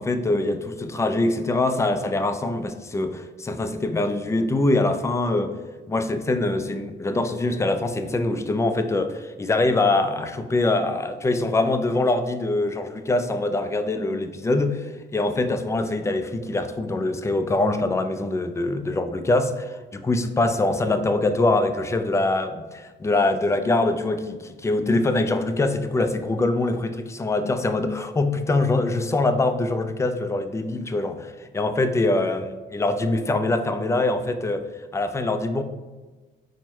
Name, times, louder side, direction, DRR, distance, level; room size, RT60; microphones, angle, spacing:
voice 1, 0.0-5.5 5.9-34.6 34.9-35.6, left 2 dB, 15° left, 8 dB, 0.3 m, -23 dB
4.5 x 2.1 x 4.3 m, 1.3 s
cardioid pair, 90°, 20 cm